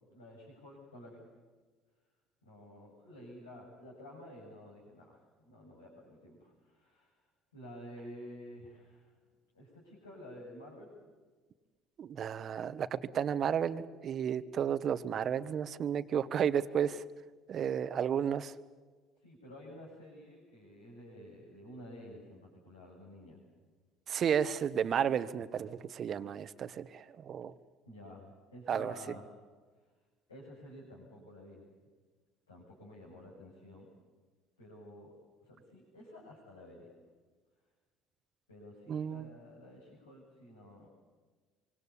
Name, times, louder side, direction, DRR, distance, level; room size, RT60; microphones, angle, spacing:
voice 1, 0.1-1.2 2.4-7.2 7.5-9.1 9.5-11.0 19.2-23.4 27.8-29.2 30.3-31.6 32.5-33.9 34.6-35.1 35.4-36.9 38.5-40.9, left 1 dB, 85° left, -5 dB, 7.1 m, -51 dB
voice 2, 12.0-17.0 17.5-18.5 24.1-27.5 28.7-28.9 38.9-39.3, right 8 dB, 45° right, 14 dB, 1.3 m, -32 dB
25.0 x 25.0 x 8.6 m, 1.4 s
figure-of-eight pair, 60°, 0 cm